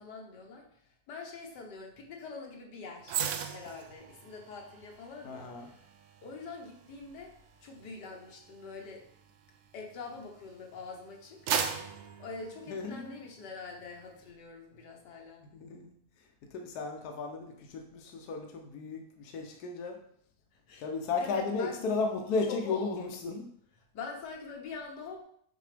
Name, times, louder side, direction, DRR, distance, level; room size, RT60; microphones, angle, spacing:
voice 1, 0.0-3.2 3.5-5.5 6.2-7.3 7.6-9.0 9.7-11.4 12.2-15.4 20.7-20.8 21.2-21.8 22.5-22.9 23.9-25.2, left 4 dB, 90° left, 1 dB, 1.7 m, -44 dB
sound 1, 3.1-10.5 10.9-13.3 13.7-13.9, right 8 dB, 70° right, 0.7 m, -39 dB
voice 2, 5.2-5.7 12.7-13.1 15.4-20.0 20.8-23.5, left 4 dB, 70° left, 2 dB, 1.2 m, -35 dB
6.6 x 4.2 x 3.4 m, 0.66 s
omnidirectional pair, 1.8 m